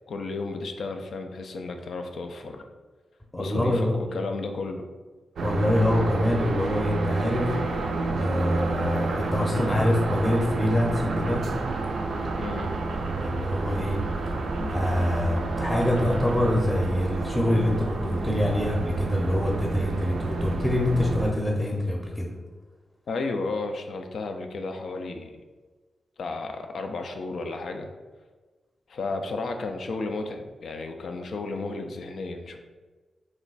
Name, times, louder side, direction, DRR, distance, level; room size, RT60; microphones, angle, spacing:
voice 1, 0.1-2.7 3.4-4.8 12.4-12.7 23.1-25.4 26.2-27.9 28.9-32.6, left 3 dB, 75° left, 5 dB, 0.3 m, -33 dB
voice 2, 3.3-4.0 5.4-7.5 8.2-11.4 13.2-14.0 14.7-22.3, left 1 dB, 20° left, -1 dB, 0.6 m, -25 dB
sound 1, 5.4-21.3, right 3 dB, 75° right, 0.3 m, -29 dB
3.1 x 2.2 x 3.9 m, 1.3 s
supercardioid pair, 40°, 0 cm